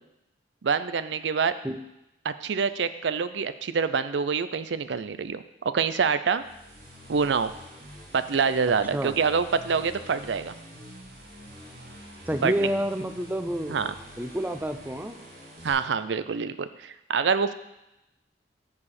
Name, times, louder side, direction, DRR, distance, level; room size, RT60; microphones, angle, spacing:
voice 1, 0.6-1.6 2.2-6.4 7.1-7.5 8.1-10.6 12.4-12.7 13.7-13.9 15.6-17.5, right 5 dB, 85° right, 13 dB, 0.5 m, -26 dB
sound 1, 6.3-15.7, equal, 60° right, 3.8 m, -46 dB
voice 2, 12.3-13.8 14.2-15.2, right 1 dB, 10° right, 7 dB, 0.5 m, -29 dB
13.5 x 4.8 x 4.3 m, 0.90 s
head